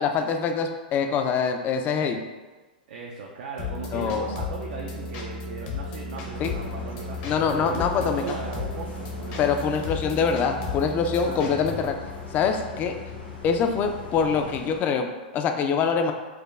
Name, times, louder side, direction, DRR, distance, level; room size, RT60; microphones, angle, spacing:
voice 1, 0.0-2.2 3.9-4.3 6.4-6.5 7.2-8.4 9.4-12.0 12.3-13.0 13.4-16.1, left 6 dB, 30° left, 5 dB, 0.4 m, -24 dB
voice 2, 2.9-7.2 7.5-9.4 11.2-11.5, right 4 dB, 65° right, -1 dB, 0.4 m, -37 dB
sound 1, 3.6-11.9, left 3 dB, 50° left, 0.7 m, -34 dB
sound 2, 6.1-14.8, left 5 dB, 80° left, 1.0 m, -40 dB
4.7 x 2.2 x 2.4 m, 1.3 s
hypercardioid pair, 110°, 5 cm